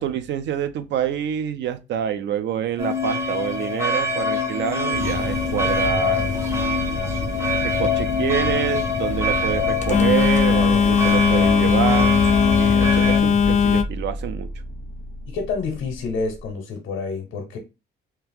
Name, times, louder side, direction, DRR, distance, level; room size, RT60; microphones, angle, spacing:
voice 1, 0.0-6.4 7.6-12.2 12.6-14.5, right 9 dB, 65° right, 0.4 m, -27 dB
sound 1, 2.8-13.2, left 2 dB, 15° right, 0.5 m, -25 dB
Telephone, 4.9-13.8, left 6 dB, 40° left, 0.4 m, -21 dB
sound 2, 10.0-16.5, left 2 dB, 40° right, 1.3 m, -32 dB
voice 2, 15.3-17.6, left 4 dB, 80° left, 0.8 m, -28 dB
2.9 x 2.4 x 3.4 m
cardioid pair, 90°, 20 cm